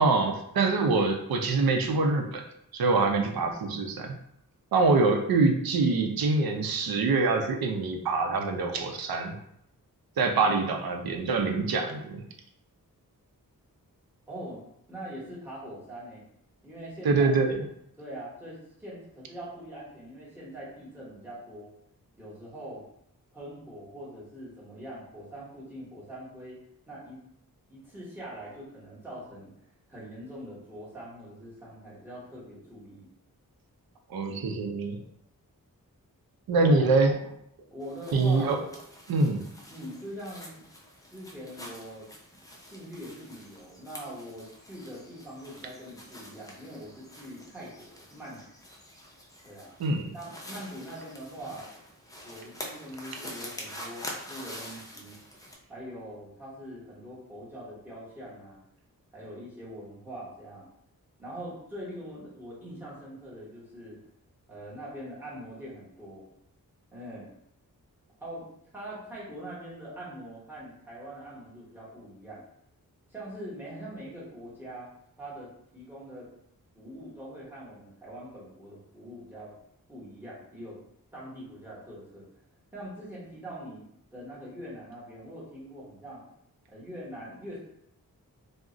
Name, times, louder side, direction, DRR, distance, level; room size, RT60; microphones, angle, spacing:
voice 1, 0.0-2.4 2.7-4.1 4.7-9.4 10.2-12.2 17.0-17.5 34.1-35.0 36.5-37.1 38.1-38.6 39.1-39.4 49.8-50.1, right 3 dB, 85° right, 4 dB, 0.5 m, -25 dB
voice 2, 14.3-14.6 14.9-16.2 16.6-17.3 18.0-21.7 22.2-22.8 23.3-26.6 26.9-27.2 27.7-29.5 29.9-33.1 36.6-36.9 37.7-38.6 39.7-40.7 41.1-42.1 42.6-48.4 49.4-49.8 50.1-51.7 52.2-55.2 55.7-58.6 59.1-60.7 61.2-64.0 64.5-66.2 66.9-67.3 68.2-72.4 73.1-74.9 75.2-76.3 76.8-79.6 79.9-80.8 81.1-82.3 82.7-86.2 86.7-87.6, equal, 5° right, -8 dB, 1.1 m, -43 dB
sound 1, 37.8-55.5, equal, 10° left, 0.5 m, -46 dB
2.4 x 2.1 x 3.7 m, 0.74 s
wide cardioid pair, 125°, 35 cm